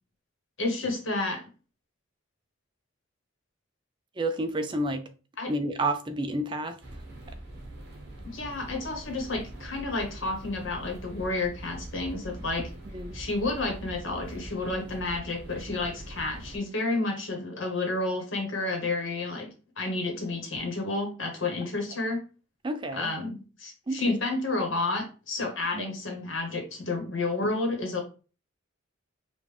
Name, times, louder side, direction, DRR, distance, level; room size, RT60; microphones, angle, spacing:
voice 1, 0.6-1.5 5.4-5.5 8.3-12.7 13.1-19.5 19.8-22.2 22.9-28.0, left 2 dB, 65° left, 1.3 m, -30 dB
voice 2, 4.2-5.0 5.5-6.8 12.9-13.2 22.6-23.1 23.9-24.0 25.7-25.9, right 1 dB, 20° right, 0.4 m, -30 dB
sound 1, 6.8-16.6, right 1 dB, 50° right, 1.2 m, -43 dB
5.1 x 2.5 x 3.4 m
head